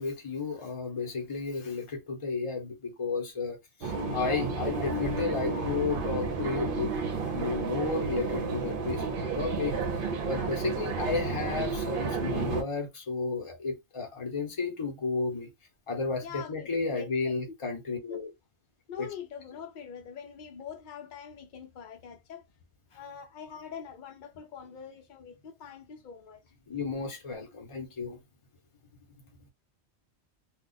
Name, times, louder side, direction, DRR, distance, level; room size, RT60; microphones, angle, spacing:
voice 1, 0.0-6.9 7.3-9.0 9.3-9.8 10.2-15.5 15.9-18.3 19.0-19.1 26.7-28.2, left 4 dB, 30° left, 0.8 m, -33 dB
sound 1, 3.8-12.6, right 4 dB, 55° right, 0.8 m, -31 dB
voice 2, 16.2-17.5 18.1-18.2 18.9-22.5 22.9-26.4, left 7 dB, 55° left, 0.6 m, -44 dB
2.3 x 2.3 x 3.8 m
omnidirectional pair, 1.1 m